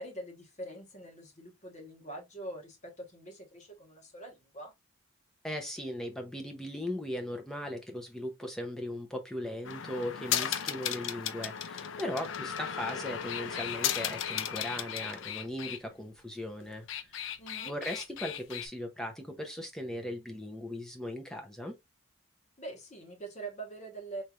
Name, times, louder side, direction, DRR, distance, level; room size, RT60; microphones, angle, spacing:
voice 1, 0.0-4.7 12.0-12.1 17.4-17.7 22.6-24.2, right 2 dB, 35° left, 1.2 m, -44 dB
voice 2, 5.4-17.3 17.7-21.8, left 1 dB, ahead, 0.7 m, -38 dB
sound 1, 9.6-15.8 16.7-18.7, left 9 dB, 60° left, 0.4 m, -35 dB
4.3 x 3.3 x 2.4 m
head